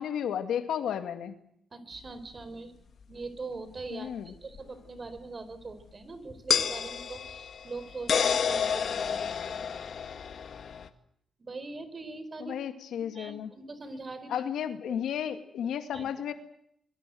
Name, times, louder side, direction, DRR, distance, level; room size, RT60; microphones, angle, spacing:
voice 1, 0.0-1.4 3.9-4.3 12.4-13.5 14.3-16.3, left 9 dB, 85° left, 9 dB, 2.3 m, -33 dB
voice 2, 1.7-2.8 3.1-9.6 11.4-12.5 13.1-14.3 14.9-15.0 15.9-16.0, right 3 dB, 40° right, 12 dB, 4.7 m, -42 dB
sound 1, 2.1-2.2 4.6-4.7 6.5-10.9, left 7 dB, 65° left, 1.9 m, -30 dB
25.0 x 23.0 x 7.9 m, 0.71 s
cardioid pair, 80°, 0 cm